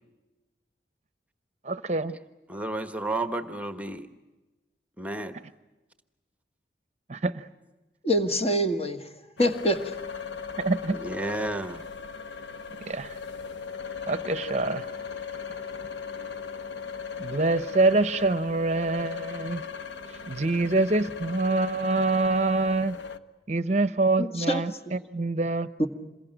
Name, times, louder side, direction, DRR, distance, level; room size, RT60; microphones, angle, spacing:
voice 1, 1.6-2.1 7.1-7.4 10.6-11.0 12.9-13.2 14.1-14.9 17.2-19.6 20.3-23.0 23.5-25.7, right 3 dB, 40° right, 13 dB, 0.8 m, -25 dB
voice 2, 2.5-4.1 5.0-5.4 10.9-11.8, right 2 dB, 10° right, 9 dB, 1.2 m, -32 dB
voice 3, 8.0-9.0 9.4-9.9 24.2-25.0 25.8-25.9, equal, 35° left, 6 dB, 2.0 m, -25 dB
sound 1, 9.4-23.2, left 6 dB, 90° left, 1.3 m, -38 dB
27.5 x 22.5 x 9.1 m, 1.1 s
head